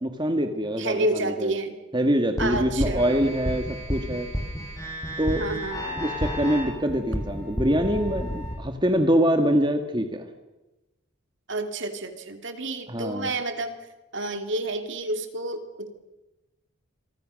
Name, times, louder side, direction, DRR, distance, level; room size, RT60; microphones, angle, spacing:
voice 1, 0.0-1.5 1.9-4.3 5.2-5.4 6.0-10.3 12.9-13.3, equal, 20° right, 6 dB, 1.7 m, -24 dB
voice 2, 0.8-1.8 2.4-3.3 5.4-6.0 11.5-13.8 14.1-15.9, right 2 dB, 60° right, 7 dB, 2.8 m, -30 dB
sound 1, 2.4-8.5, equal, 15° left, 7.1 m, -31 dB
27.5 x 24.0 x 6.5 m, 1.0 s
head